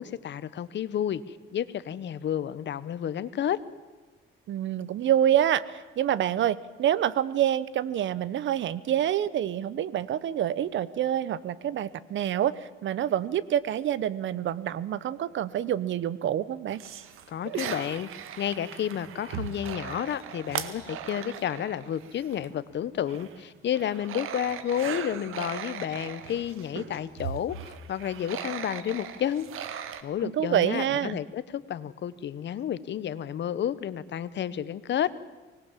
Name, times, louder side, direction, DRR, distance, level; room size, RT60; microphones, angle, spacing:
voice 1, 0.0-3.6 17.3-18.1 18.4-35.1, left 10 dB, 60° left, 16 dB, 1.2 m, -31 dB
voice 2, 4.5-16.8 30.2-31.2, right 10 dB, 70° right, 18 dB, 1.1 m, -27 dB
sound 1, 16.7-22.6 23.0-30.0, right 9 dB, 85° right, 1.8 m, -38 dB
25.0 x 20.0 x 7.5 m, 1.3 s
cardioid pair, 115°, 21 cm